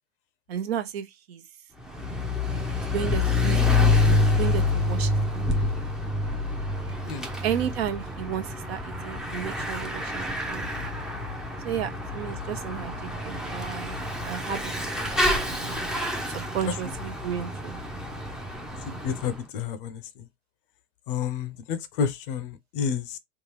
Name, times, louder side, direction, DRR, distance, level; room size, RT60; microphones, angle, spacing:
voice 1, 0.5-1.4 2.8-5.5 7.4-10.7 11.6-14.0 14.2-14.7 15.1-15.9 16.5-17.7, right 9 dB, 55° right, 0.9 m, -33 dB
Bicycle / Mechanisms, 1.8-19.4, left 2 dB, ahead, 0.6 m, -27 dB
voice 2, 18.9-20.2 21.1-23.2, left 7 dB, 45° left, 0.6 m, -30 dB
3.7 x 2.4 x 3.1 m
figure-of-eight pair, 90°, 37 cm